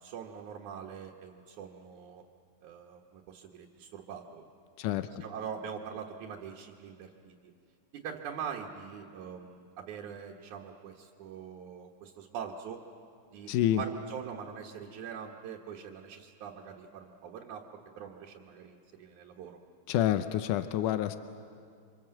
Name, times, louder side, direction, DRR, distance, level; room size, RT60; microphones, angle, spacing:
voice 1, 0.0-2.2 2.6-4.4 4.9-7.5 8.0-12.8 13.3-13.5 13.8-17.6 18.0-19.6, right 7 dB, 75° right, 0 dB, 2.7 m, -43 dB
voice 2, 4.8-5.2 13.5-13.8 19.9-21.2, left 12 dB, 85° left, 10 dB, 2.3 m, -28 dB
28.5 x 25.0 x 7.7 m, 2.3 s
omnidirectional pair, 3.5 m